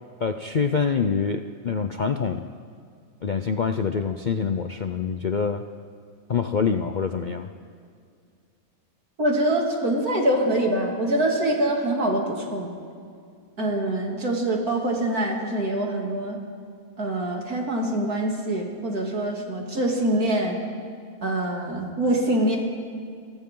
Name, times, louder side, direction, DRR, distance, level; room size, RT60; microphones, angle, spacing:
voice 1, 0.2-2.5 3.2-5.6 6.3-7.5, left 5 dB, 50° left, 7 dB, 0.5 m, -25 dB
voice 2, 9.2-12.7 13.6-16.4 17.0-20.6 21.2-22.6, right 1 dB, 75° right, -1 dB, 3.4 m, -24 dB
28.5 x 24.0 x 3.8 m, 2.3 s
omnidirectional pair, 1.6 m